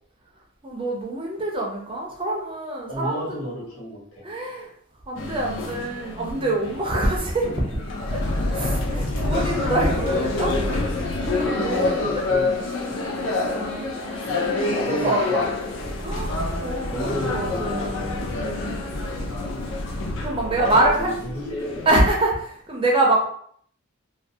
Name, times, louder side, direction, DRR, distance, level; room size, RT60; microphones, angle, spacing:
voice 1, 0.6-3.3 4.2-4.7 5.1-7.8 8.1-8.2 8.5-12.2 13.5-13.9 14.4-15.5 16.0-18.8 20.2-21.1 21.9-23.3, right 1 dB, 25° right, -1 dB, 0.4 m, -25 dB
voice 2, 2.9-4.2 11.4-13.5 14.7-15.9 16.8-18.1 20.4-21.9, left 1 dB, 85° left, -6 dB, 1.2 m, -33 dB
sound 1, 5.2-21.9, left 2 dB, 60° left, 0.4 m, -27 dB
2.2 x 2.2 x 2.6 m, 0.62 s
head